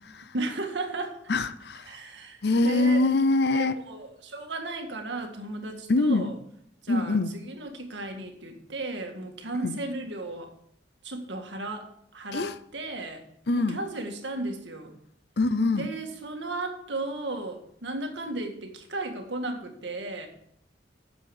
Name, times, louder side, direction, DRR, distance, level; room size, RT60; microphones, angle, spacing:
voice 1, 0.3-1.2 1.8-3.1 3.5-6.4 6.8-10.5 11.0-13.2 13.6-14.9 15.7-20.3, right 2 dB, 75° right, 4 dB, 1.9 m, -35 dB
voice 2, 1.3-1.9 2.4-3.7 5.9-6.3 6.9-7.3 9.6-9.8 12.3-12.5 13.5-13.8 15.4-15.9, left 2 dB, 65° left, 14 dB, 0.6 m, -24 dB
9.4 x 7.1 x 7.1 m, 0.69 s
head